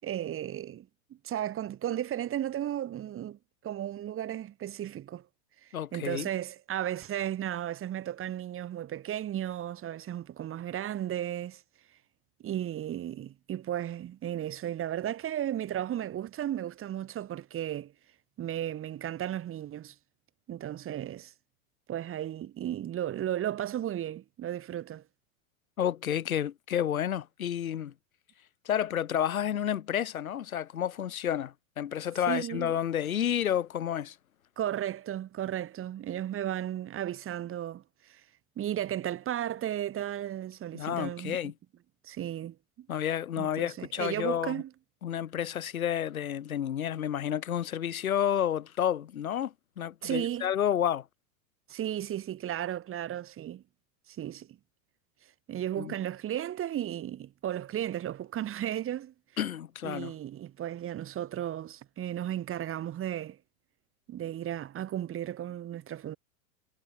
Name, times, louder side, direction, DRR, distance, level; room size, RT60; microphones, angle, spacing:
voice 1, 0.0-5.2 5.6-11.6 12.4-17.9 18.4-19.9 20.5-21.3 21.9-25.0 32.3-32.7 34.6-38.2 38.6-41.4 42.0-42.9 43.4-44.7 50.0-50.5 51.7-53.6 54.1-54.6 55.5-59.1 59.8-63.4 64.1-66.2, right 11 dB, 30° right, 7.9 m, -34 dB
voice 2, 5.7-6.3 25.8-27.9 28.7-34.2 40.7-41.5 42.9-44.6 45.0-51.0 55.8-55.9 59.4-60.1, left 10 dB, 90° left, 2.3 m, -30 dB
hypercardioid pair, 115°, 41 cm